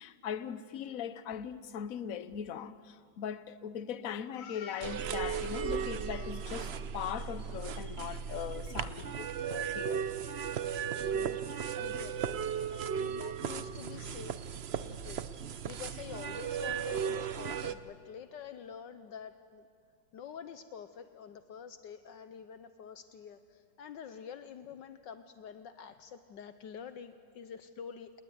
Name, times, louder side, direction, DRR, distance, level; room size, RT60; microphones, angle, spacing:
voice 1, 0.0-10.1 13.9-14.2, left 8 dB, 55° left, 1.2 m, -40 dB
voice 2, 4.3-5.0 11.1-14.4 14.7-19.7 20.1-28.2, left 7 dB, 70° left, 1.5 m, -47 dB
sound 1, 4.8-17.7, right 7 dB, 60° right, 0.6 m, -36 dB
28.5 x 19.5 x 9.4 m
omnidirectional pair, 2.1 m